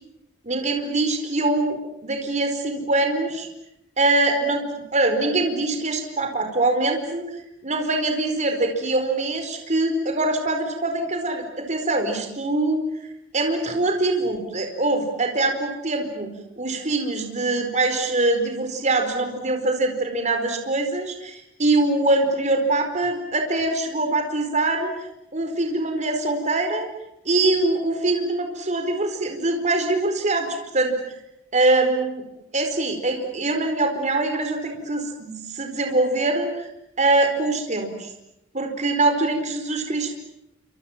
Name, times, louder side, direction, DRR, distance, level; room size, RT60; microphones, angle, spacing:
voice 1, 0.4-3.5 4.0-4.6 4.9-7.2 7.6-12.8 13.3-16.3 16.6-24.9 25.3-26.9 27.2-30.5 30.7-31.1 31.5-32.2 32.5-36.7 37.0-38.1 38.5-40.1, right 2 dB, 40° right, 4 dB, 4.6 m, -23 dB
28.5 x 26.5 x 7.4 m, 0.84 s
head